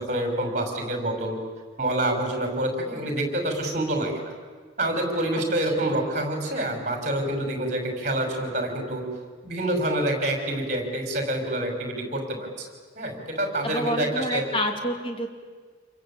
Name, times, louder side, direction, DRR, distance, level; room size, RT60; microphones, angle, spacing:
voice 1, 0.0-1.4 1.8-4.3 4.8-9.0 9.4-12.7 13.0-14.4, right 1 dB, 40° right, 4 dB, 5.8 m, -27 dB
voice 2, 5.5-6.0 13.6-15.3, equal, 30° left, 3 dB, 2.9 m, -29 dB
28.5 x 22.5 x 8.8 m, 1.5 s
head